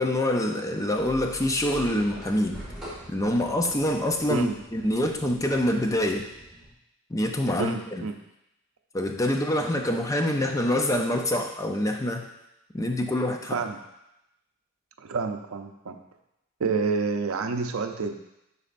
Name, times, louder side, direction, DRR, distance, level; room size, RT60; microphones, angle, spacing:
voice 1, 0.0-2.6 3.1-6.3 7.1-8.1 8.9-12.3 12.7-13.6, left 1 dB, 15° left, 3 dB, 0.4 m, -26 dB
sound 1, 0.9-6.7, equal, ahead, 1.8 m, -44 dB
voice 2, 7.6-8.2 13.5-13.8 15.0-16.0 16.6-18.2, right 4 dB, 70° right, 6 dB, 0.5 m, -29 dB
10.5 x 4.1 x 2.5 m, 0.87 s
head